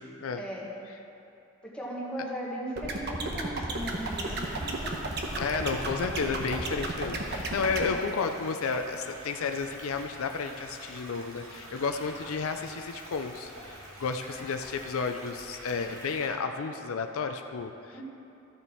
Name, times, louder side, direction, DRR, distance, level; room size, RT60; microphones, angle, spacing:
voice 1, 0.3-0.7 1.6-5.0 7.7-7.8 17.9-18.0, right 1 dB, 5° left, -5 dB, 1.6 m, -37 dB
sound 1, 2.8-7.8, right 2 dB, 50° right, 1.0 m, -33 dB
sound 2, 3.8-16.3, right 1 dB, 80° right, 2.4 m, -47 dB
voice 2, 5.4-18.0, left 5 dB, 75° left, 6 dB, 0.5 m, -32 dB
13.5 x 6.9 x 4.4 m, 2.8 s
head